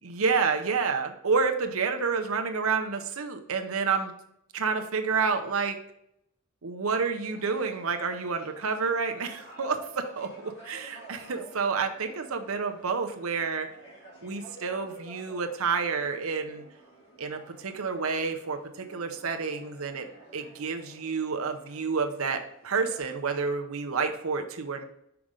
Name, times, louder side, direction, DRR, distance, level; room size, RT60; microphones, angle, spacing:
voice 1, 0.0-4.1 4.5-5.8 6.6-13.7 14.2-16.6 17.2-20.1 20.3-24.8, right 5 dB, 80° right, 6 dB, 0.8 m, -29 dB
sound 1, 7.3-23.0, right 1 dB, 55° left, 2.4 m, -51 dB
5.9 x 4.9 x 3.8 m, 0.78 s
head